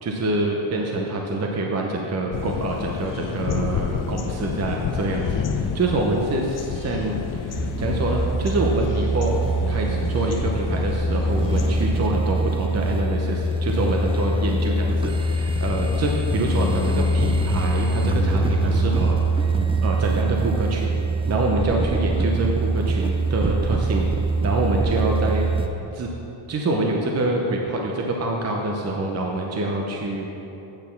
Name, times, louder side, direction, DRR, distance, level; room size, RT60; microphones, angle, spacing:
voice 1, 0.0-9.4 9.7-20.9 21.3-24.1 24.4-25.5 25.9-26.1 26.5-30.3, right 2 dB, 30° right, 0 dB, 0.7 m, -26 dB
sound 1, 2.3-12.1, left 7 dB, 45° left, 0.5 m, -30 dB
sound 2, 7.5-25.7, right 2 dB, 15° right, 0.3 m, -23 dB
9.0 x 4.1 x 7.0 m, 3.0 s
cardioid pair, 115°, 48 cm